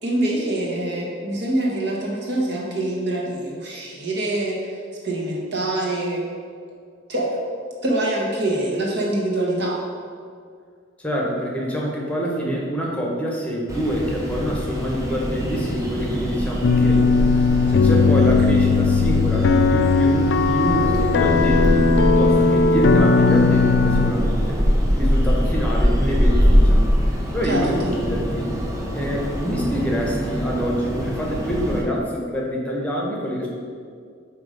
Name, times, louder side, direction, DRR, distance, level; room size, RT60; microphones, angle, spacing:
voice 1, 0.0-4.6 5.0-6.3 7.1-7.4 7.8-9.8 27.4-27.9, right 1 dB, 60° right, -3 dB, 1.4 m, -24 dB
voice 2, 11.0-17.4 17.7-24.6 24.9-26.8 27.3-28.5 28.9-33.5, equal, 5° left, -2 dB, 1.0 m, -26 dB
sound 1, 13.7-31.8, equal, 15° right, 0.9 m, -23 dB
sound 2, 16.6-24.1, left 4 dB, 60° left, 0.3 m, -17 dB
7.9 x 3.0 x 5.1 m, 2.1 s
head